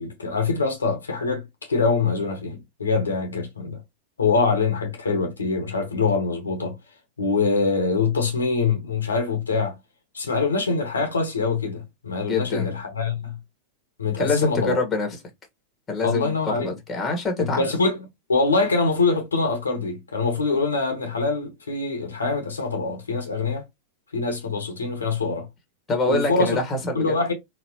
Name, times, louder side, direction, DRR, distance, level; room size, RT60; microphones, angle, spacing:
voice 1, 0.0-3.8 4.2-6.8 7.2-9.8 10.1-13.3 14.0-14.8 16.0-16.7 17.4-23.6 24.1-25.5 26.1-26.6 26.9-27.3, left 4 dB, 75° left, 1.0 m, -24 dB
voice 2, 12.3-12.7 14.2-15.1 15.9-17.6 25.9-27.1, left 3 dB, 20° left, 1.2 m, -25 dB
4.1 x 2.0 x 2.8 m
figure-of-eight pair, 90°, 0 cm